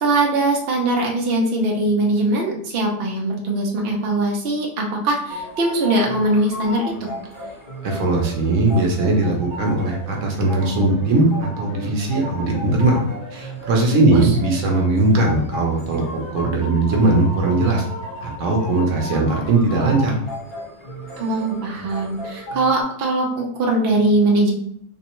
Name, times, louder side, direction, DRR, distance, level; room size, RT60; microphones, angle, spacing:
voice 1, 0.0-7.1 14.1-14.2 21.2-24.5, right 2 dB, 80° right, -1 dB, 0.5 m, -21 dB
sound 1, 5.3-22.8, left 1 dB, 55° left, 0.4 m, -34 dB
voice 2, 7.8-13.0 13.3-17.8 18.2-20.2, right 2 dB, 60° right, 0 dB, 0.8 m, -19 dB
3.4 x 3.2 x 3.0 m, 0.65 s
omnidirectional pair, 2.1 m